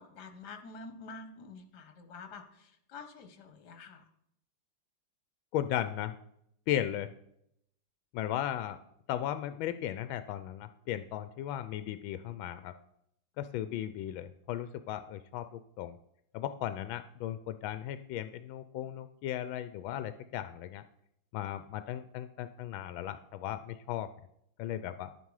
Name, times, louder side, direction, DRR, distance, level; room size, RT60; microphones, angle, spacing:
voice 1, 0.0-4.1, left 4 dB, 60° left, 8 dB, 1.7 m, -48 dB
voice 2, 5.5-6.2 6.7-7.1 8.1-8.8 9.1-12.7 13.4-16.0 16.3-20.8 21.3-24.1 24.6-25.1, left 11 dB, 85° left, 11 dB, 1.4 m, -36 dB
11.0 x 9.1 x 4.8 m, 0.75 s
omnidirectional pair, 2.1 m